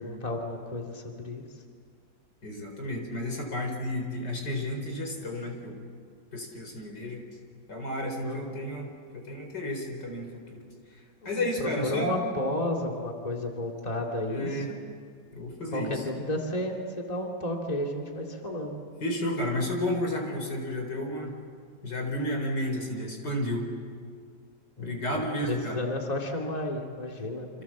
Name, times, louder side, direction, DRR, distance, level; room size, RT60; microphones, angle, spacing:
voice 1, 0.0-1.4 8.2-8.6 11.2-14.8 15.7-18.8 24.8-24.9 25.4-27.5, left 1 dB, 20° left, 0 dB, 2.7 m, -32 dB
voice 2, 2.4-5.8 6.3-7.3 7.7-10.6 10.9-12.2 14.3-14.7 15.3-16.0 19.0-21.3 21.8-23.6 24.8-25.8 27.5-27.6, left 1 dB, 75° left, 3 dB, 4.8 m, -32 dB
28.0 x 27.0 x 7.4 m, 2.1 s
omnidirectional pair, 1.9 m